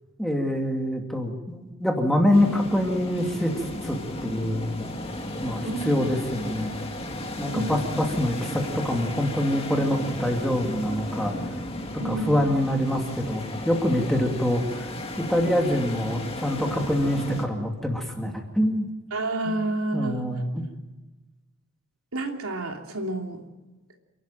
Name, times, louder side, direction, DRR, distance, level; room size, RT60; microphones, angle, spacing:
voice 1, 0.2-4.0 4.2-4.7 5.4-6.8 7.4-11.4 12.0-14.9 15.2-18.9 19.5-19.6 19.9-20.7, left 1 dB, ahead, 2 dB, 2.4 m, -25 dB
sound 1, 2.3-17.5, left 1 dB, 25° left, 2.2 m, -34 dB
voice 2, 7.5-7.9 12.0-12.3 19.1-20.3 22.1-23.4, right 2 dB, 80° right, 3 dB, 3.0 m, -29 dB
28.0 x 12.5 x 9.0 m, 1.2 s
head